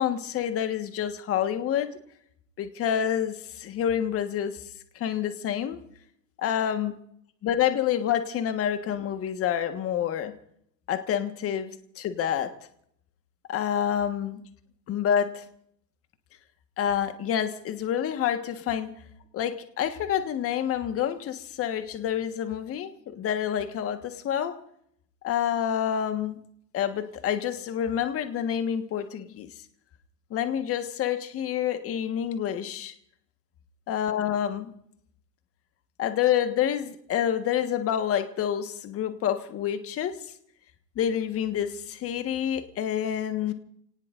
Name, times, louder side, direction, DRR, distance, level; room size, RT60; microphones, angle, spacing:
voice 1, 0.0-1.9 2.6-4.6 4.9-5.8 6.4-6.9 7.4-10.3 10.9-11.7 12.0-12.5 13.5-14.4 14.9-15.4 16.8-18.9 19.3-24.5 25.2-26.4 26.7-29.5 30.3-32.9 33.9-34.7 36.0-40.2 41.0-43.5, left 9 dB, 25° left, 8 dB, 1.5 m, -28 dB
29.0 x 19.0 x 2.6 m, 0.70 s
hypercardioid pair, 120°, 50 cm